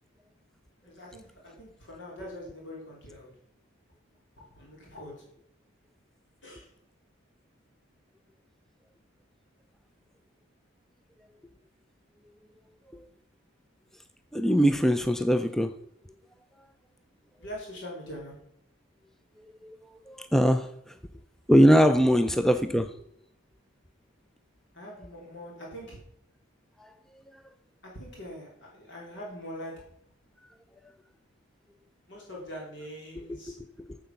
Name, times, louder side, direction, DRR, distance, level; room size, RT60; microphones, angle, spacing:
voice 1, 0.8-3.3 4.5-5.1 6.4-6.7 17.4-18.4 24.7-26.0 27.8-29.8 32.1-33.5, equal, 65° left, 3.1 m, -43 dB
voice 2, 14.3-15.8 19.6-20.9 21.5-23.0 26.8-26.9 27.3-27.4 33.2-34.0, equal, ahead, 0.4 m, -23 dB
9.0 x 7.6 x 5.8 m
head